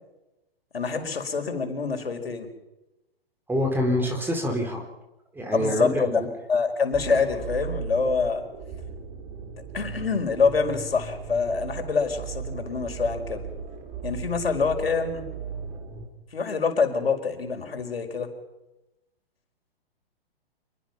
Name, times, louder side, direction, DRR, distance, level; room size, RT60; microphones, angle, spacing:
voice 1, 0.7-2.5 5.5-6.2 6.5-8.4 9.7-13.4 14.0-15.3 16.3-18.3, left 5 dB, 70° left, 5 dB, 5.1 m, -25 dB
voice 2, 3.5-4.8 5.3-6.3, equal, 5° right, 4 dB, 4.3 m, -26 dB
sound 1, 6.9-16.1, right 6 dB, 25° right, 4.5 m, -37 dB
27.5 x 22.5 x 5.9 m, 0.97 s
figure-of-eight pair, 120°, 30 cm